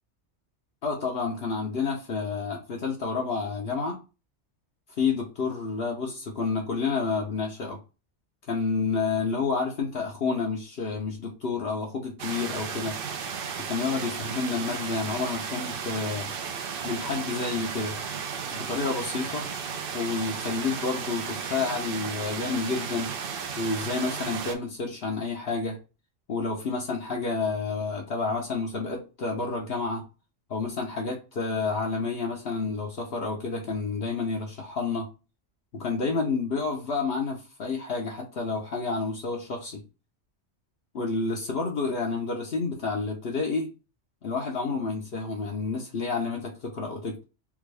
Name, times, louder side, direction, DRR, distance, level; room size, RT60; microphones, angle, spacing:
voice 1, 0.8-4.0 5.0-7.8 8.5-13.0 13.6-16.3 16.8-18.0 18.5-19.5 19.9-23.1 23.6-25.8 26.3-30.0 30.5-35.1 35.7-39.8 40.9-43.7 44.2-47.2, left 4 dB, 60° left, 1.0 m, -29 dB
sound 1, 12.2-24.6, right 6 dB, 60° right, 0.7 m, -34 dB
3.5 x 2.5 x 3.2 m
omnidirectional pair, 1.2 m